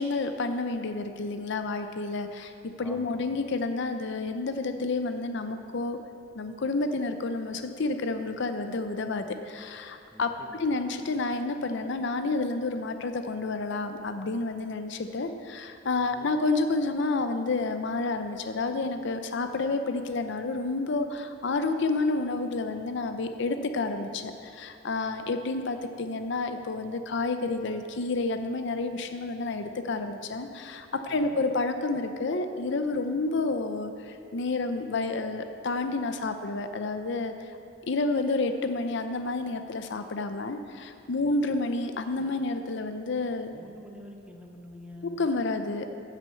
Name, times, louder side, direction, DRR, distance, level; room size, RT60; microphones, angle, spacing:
voice 1, 0.0-2.5 2.8-6.0 6.3-10.3 10.6-37.3 37.9-43.5 45.2-45.9, left 3 dB, 65° left, 8 dB, 0.6 m, -30 dB
voice 2, 2.8-3.4 10.1-11.0 16.0-16.3 31.1-31.4 41.2-41.4 43.5-45.2, equal, 5° right, 1 dB, 0.9 m, -47 dB
10.0 x 6.2 x 7.5 m, 2.4 s
head